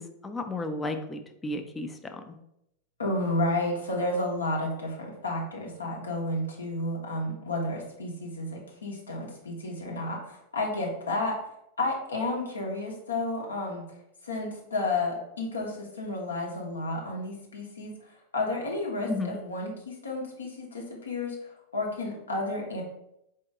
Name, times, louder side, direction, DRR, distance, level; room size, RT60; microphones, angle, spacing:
voice 1, 0.0-2.4 19.1-19.4, left 2 dB, 15° left, 6 dB, 0.5 m, -34 dB
voice 2, 3.0-11.3 11.8-13.8 14.2-17.9 18.3-22.8, left 2 dB, 75° left, -1 dB, 1.1 m, -31 dB
4.4 x 2.8 x 3.6 m, 0.80 s
figure-of-eight pair, 90°, 0 cm